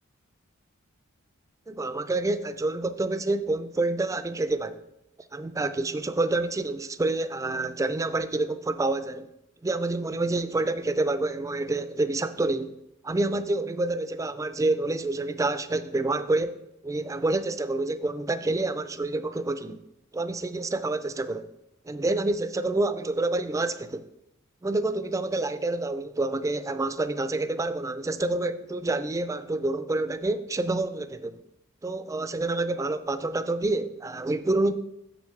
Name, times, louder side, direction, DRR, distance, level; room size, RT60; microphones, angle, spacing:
voice 1, 1.7-4.8 5.3-9.3 9.6-12.7 13.0-16.6 16.8-19.8 20.1-21.5 21.9-24.1 24.6-31.4 31.8-34.7, right 2 dB, 15° right, 0.3 m, -28 dB
8.1 x 7.1 x 3.2 m
head